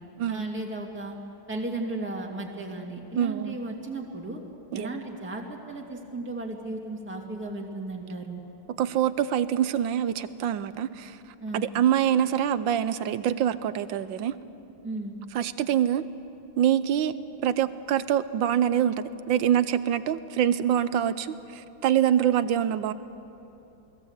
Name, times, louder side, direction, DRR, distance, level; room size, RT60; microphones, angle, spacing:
voice 1, 0.3-1.2 1.5-4.4 4.7-8.4 11.4-11.7 14.8-15.2, right 2 dB, 5° right, 2.2 m, -35 dB
voice 2, 3.2-3.6 4.7-4.9 8.7-11.2 11.5-14.3 15.3-16.0 16.6-17.1 17.4-22.9, right 10 dB, 70° right, 1.4 m, -25 dB
28.5 x 20.5 x 8.2 m
omnidirectional pair, 2.3 m